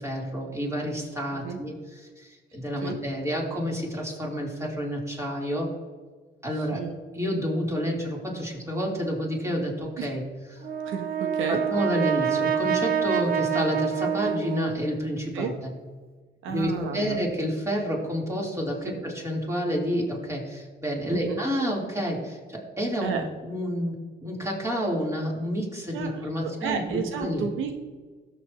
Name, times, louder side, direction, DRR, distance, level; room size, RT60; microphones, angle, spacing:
voice 1, 0.0-5.7 6.4-6.8 7.1-10.2 10.5-10.6 11.5-15.7 16.5-23.9 24.2-26.8 27.1-27.4, equal, 15° right, -3 dB, 3.6 m, -29 dB
Brass instrument, 10.6-15.0, right 8 dB, 50° right, 0.9 m, -27 dB
voice 2, 10.8-11.6 15.3-15.5 16.4-17.2 21.1-21.4 23.0-23.2 25.9-27.7, right 6 dB, 90° right, 5 dB, 1.0 m, -31 dB
17.0 x 7.9 x 3.1 m, 1.4 s
cardioid pair, 90°, 20 cm